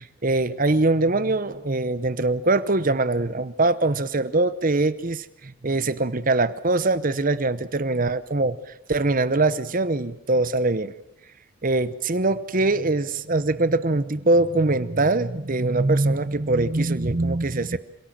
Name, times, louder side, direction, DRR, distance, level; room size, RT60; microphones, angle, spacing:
voice 1, 0.0-8.6 8.9-10.9 11.6-17.8, right 2 dB, 40° right, 14 dB, 0.8 m, -22 dB
27.0 x 18.0 x 7.4 m, 0.82 s
head